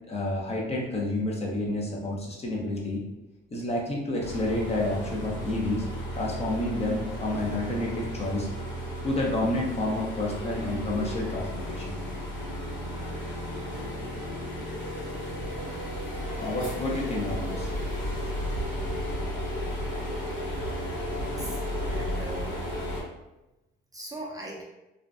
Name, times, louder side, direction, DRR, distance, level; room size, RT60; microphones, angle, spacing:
voice 1, 0.1-3.0 3.5-5.8 6.1-8.5 9.0-12.0 16.1-17.7, left 1 dB, 30° left, -3 dB, 0.6 m, -29 dB
sound 1, 4.2-23.0, equal, 80° left, 1.3 m, -33 dB
voice 2, 21.4-22.6 23.9-24.6, right 2 dB, 20° right, -3 dB, 0.5 m, -40 dB
2.5 x 2.1 x 2.3 m, 0.97 s
cardioid pair, 90°, 20 cm